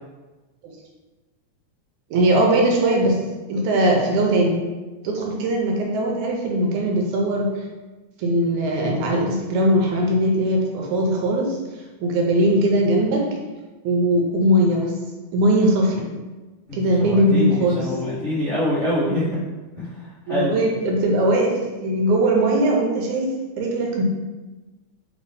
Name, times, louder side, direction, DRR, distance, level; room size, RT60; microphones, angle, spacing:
voice 1, 2.1-3.2 3.5-4.6 5.0-7.5 8.2-11.6 12.0-13.3 13.8-14.9 15.3-16.1 16.7-17.8 20.3-24.0, right 1 dB, 85° right, -1 dB, 2.0 m, -20 dB
voice 2, 16.7-19.4 19.8-20.6, equal, 50° left, -14 dB, 0.8 m, -25 dB
4.7 x 2.6 x 3.3 m, 1.2 s
omnidirectional pair, 3.5 m